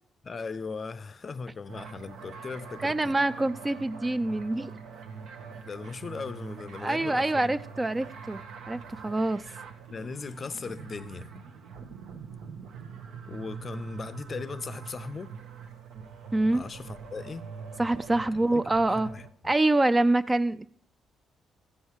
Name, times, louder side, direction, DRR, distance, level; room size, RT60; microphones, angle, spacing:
voice 1, 0.2-3.1 5.7-7.5 9.9-11.3 13.3-15.4 16.5-17.5 18.3-19.5, left 4 dB, 40° left, 0.5 m, -38 dB
sound 1, 1.7-19.3, right 6 dB, 80° right, 1.0 m, -44 dB
voice 2, 2.8-4.7 6.8-8.4 8.7-9.4 16.3-16.6 17.8-19.1 19.4-20.7, right 2 dB, 20° right, 0.3 m, -25 dB
14.5 x 5.5 x 4.7 m
cardioid pair, 90°, 0 cm